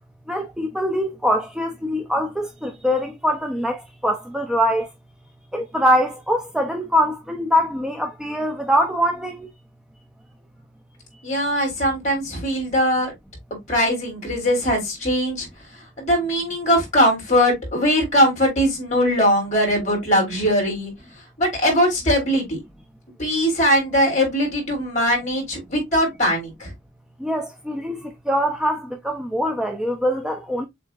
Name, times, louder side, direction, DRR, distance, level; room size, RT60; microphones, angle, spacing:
voice 1, 0.3-4.9 5.5-9.5 27.2-30.7, equal, 5° right, 0.5 m, -23 dB
voice 2, 11.2-13.1 13.7-15.5 16.0-20.9 21.4-22.6 23.2-26.7, equal, 40° left, 3.2 m, -20 dB
6.9 x 2.8 x 2.3 m
head